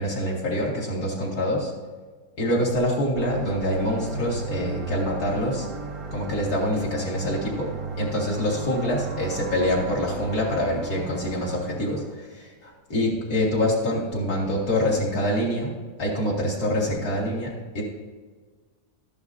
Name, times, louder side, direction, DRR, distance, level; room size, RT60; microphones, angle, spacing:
voice 1, 0.0-1.7 2.4-5.7 6.1-15.7 16.0-17.8, left 1 dB, 65° left, -4 dB, 2.8 m, -25 dB
sound 1, 3.1-12.1, right 4 dB, 35° right, 0.5 m, -35 dB
14.0 x 10.5 x 2.7 m, 1.4 s
omnidirectional pair, 1.7 m